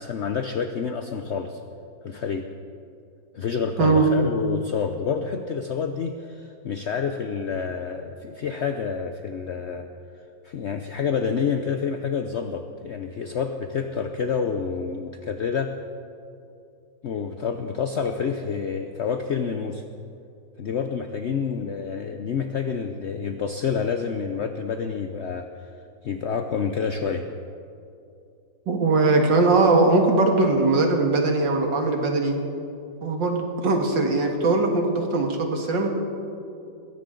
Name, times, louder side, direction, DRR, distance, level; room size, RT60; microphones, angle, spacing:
voice 1, 0.0-1.6 2.0-2.5 3.3-9.9 10.4-15.8 17.0-19.8 20.6-25.7 26.0-27.3, left 6 dB, 65° left, 6 dB, 0.6 m, -28 dB
voice 2, 3.8-4.1 28.7-32.4 33.0-35.9, right 3 dB, 70° right, 2 dB, 2.4 m, -20 dB
21.5 x 16.5 x 3.9 m, 2.5 s
omnidirectional pair, 2.0 m